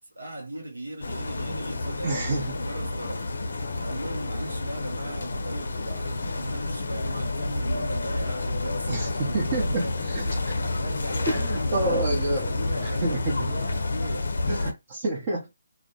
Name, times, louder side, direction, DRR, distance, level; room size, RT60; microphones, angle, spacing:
voice 1, 0.1-3.3 3.8-10.0 10.6-14.7, right 1 dB, 90° right, 0.6 m, -38 dB
sound 1, 1.0-14.7, left 2 dB, 70° left, 0.4 m, -29 dB
voice 2, 2.0-2.5 8.9-10.5 11.3-12.5 12.8-13.5 14.5-15.5, right 2 dB, 35° right, 0.7 m, -29 dB
2.1 x 2.0 x 2.8 m
figure-of-eight pair, 150°, 0 cm